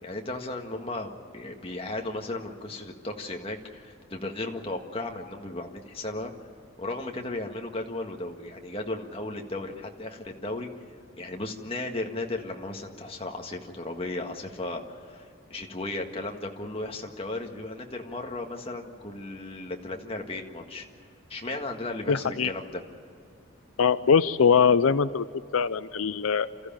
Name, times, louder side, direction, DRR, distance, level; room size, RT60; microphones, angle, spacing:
voice 1, 0.0-6.3 6.8-10.7 11.2-20.9 21.3-22.8, left 2 dB, 25° left, 2 dB, 1.8 m, -35 dB
voice 2, 22.1-22.5 23.8-25.3 25.5-26.5, left 6 dB, 85° left, 14 dB, 0.5 m, -22 dB
28.0 x 14.5 x 9.0 m, 2.5 s
head